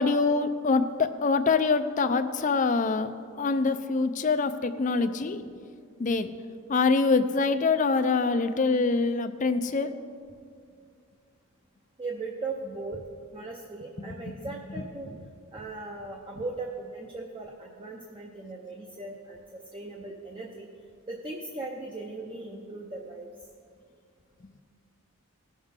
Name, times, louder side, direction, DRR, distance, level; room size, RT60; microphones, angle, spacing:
voice 1, 0.0-5.4 6.0-6.3 6.7-9.9 14.0-15.2, left 4 dB, 35° left, 10 dB, 0.4 m, -25 dB
voice 2, 12.0-13.0 13.3-19.4 19.7-20.7 21.1-23.3, right 3 dB, 25° right, -1 dB, 0.7 m, -38 dB
17.5 x 6.5 x 3.7 m, 2.2 s
head